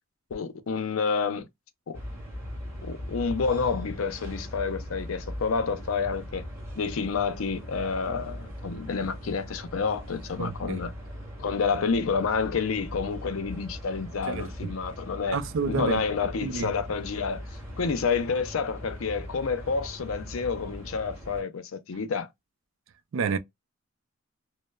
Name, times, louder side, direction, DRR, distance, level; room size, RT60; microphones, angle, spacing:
voice 1, 0.3-1.5 1.9-2.0 2.8-6.5 6.8-10.9 11.4-15.4 15.7-17.4 17.8-22.3, left 5 dB, 85° left, 0.5 m, -29 dB
sound 1, 1.9-21.4, equal, 15° right, 1.6 m, -40 dB
voice 2, 10.4-10.8 14.3-14.7 15.3-16.7 23.1-23.4, right 5 dB, 70° right, 0.4 m, -30 dB
3.0 x 2.0 x 2.2 m
head